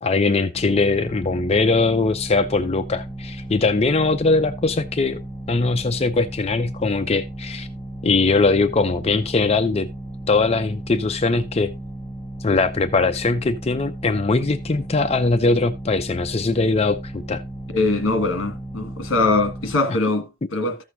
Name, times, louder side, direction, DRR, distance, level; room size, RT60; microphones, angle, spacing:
voice 1, 0.0-5.2 5.5-7.7 8.0-9.9 10.3-11.7 12.4-17.4 19.9-20.0, left 3 dB, 30° left, 0.5 m, -21 dB
sound 1, 0.5-19.8, right 1 dB, ahead, 0.8 m, -35 dB
voice 2, 17.7-20.8, left 2 dB, 60° left, 1.7 m, -22 dB
14.5 x 6.3 x 2.6 m
head